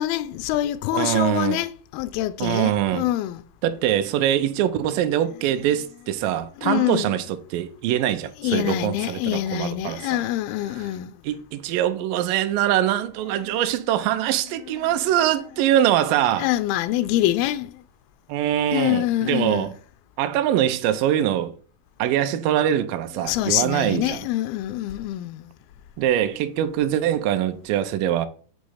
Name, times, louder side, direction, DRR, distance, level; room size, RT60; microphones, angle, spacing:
voice 1, 0.0-3.4 6.6-7.1 8.4-11.1 16.4-17.7 18.7-19.7 23.2-25.5, left 14 dB, 85° left, 2.4 m, -25 dB
voice 2, 0.9-1.6 2.4-3.1 3.6-10.2 11.2-16.5 18.3-19.8 20.2-21.5 22.0-24.2 26.0-28.3, right 11 dB, 80° right, 2.1 m, -23 dB
8.2 x 3.1 x 6.3 m
omnidirectional pair, 4.2 m